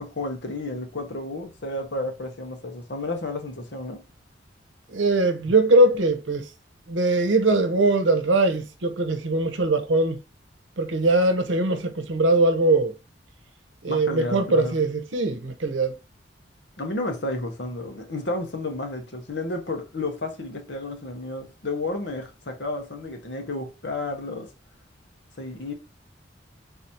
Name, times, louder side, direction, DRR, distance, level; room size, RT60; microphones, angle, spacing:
voice 1, 0.0-4.0 13.9-14.7 16.8-24.5 25.4-25.7, left 2 dB, 65° left, 1.0 m, -32 dB
voice 2, 4.9-6.5 6.9-10.2 10.8-12.9 13.8-15.9, right 2 dB, 85° right, 0.8 m, -21 dB
4.0 x 2.7 x 4.3 m
head